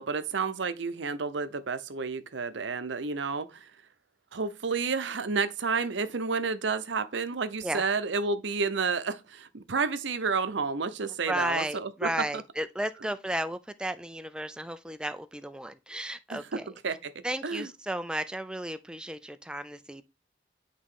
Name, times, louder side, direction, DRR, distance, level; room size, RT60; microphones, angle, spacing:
voice 1, 0.0-3.7 4.3-12.4 16.3-17.7, right 4 dB, 75° right, 0.7 m, -31 dB
voice 2, 11.3-16.6 17.2-20.0, right 1 dB, 5° right, 0.4 m, -34 dB
10.0 x 3.7 x 3.8 m
head